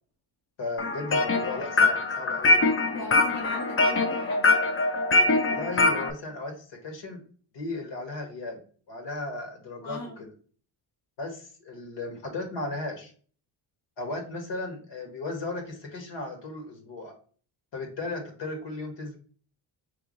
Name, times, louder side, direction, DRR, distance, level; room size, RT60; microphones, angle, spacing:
voice 1, 0.6-2.6 5.4-7.2 7.5-8.6 8.9-10.3 11.2-13.1 14.0-17.1 17.7-19.2, left 2 dB, 65° left, 3 dB, 1.7 m, -35 dB
sound 1, 0.8-6.1, left 3 dB, 30° left, 0.6 m, -23 dB
voice 2, 2.9-4.6 9.8-10.2, left 1 dB, 45° left, -3 dB, 1.2 m, -38 dB
3.6 x 2.7 x 4.0 m, 0.42 s
cardioid pair, 75°, 47 cm